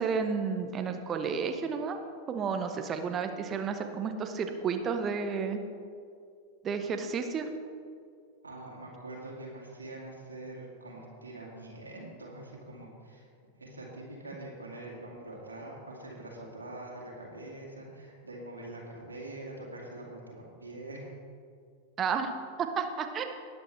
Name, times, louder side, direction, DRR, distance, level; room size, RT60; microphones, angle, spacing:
voice 1, 0.0-2.0 2.3-5.6 6.6-7.5 22.0-23.2, right 5 dB, 25° right, 6 dB, 1.1 m, -31 dB
voice 2, 8.4-13.3 13.6-21.1, right 2 dB, 80° right, -3 dB, 2.4 m, -44 dB
20.0 x 8.6 x 3.4 m, 2.3 s
figure-of-eight pair, 90°, 0 cm